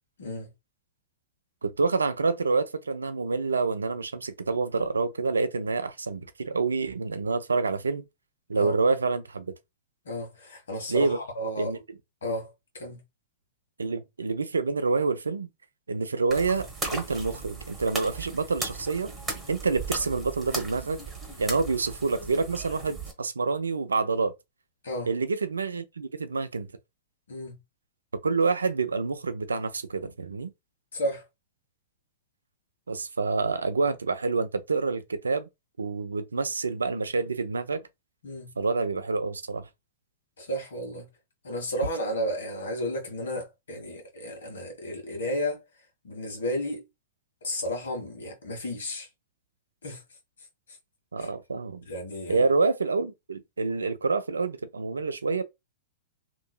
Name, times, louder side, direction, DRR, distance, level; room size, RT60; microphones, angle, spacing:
voice 1, 0.2-0.5 8.5-8.7 10.0-11.7 12.2-13.0 24.8-25.1 27.3-27.6 30.9-31.2 38.2-38.5 40.4-41.1 41.4-45.6 46.0-46.8 47.4-49.1 49.8-50.0 51.2-51.3 51.9-52.5, equal, 75° left, 1.4 m, -33 dB
voice 2, 1.6-8.0 8.5-9.5 10.9-11.2 11.6-11.8 13.8-15.5 15.9-19.1 19.5-21.0 21.4-24.3 25.1-26.7 28.2-30.5 32.9-35.5 35.8-37.8 38.6-39.7 51.1-51.8 52.3-55.4, right 4 dB, 85° right, 0.5 m, -27 dB
sound 1, 16.3-23.1, right 3 dB, 10° right, 1.2 m, -37 dB
3.0 x 2.7 x 2.2 m
figure-of-eight pair, 105°, 0 cm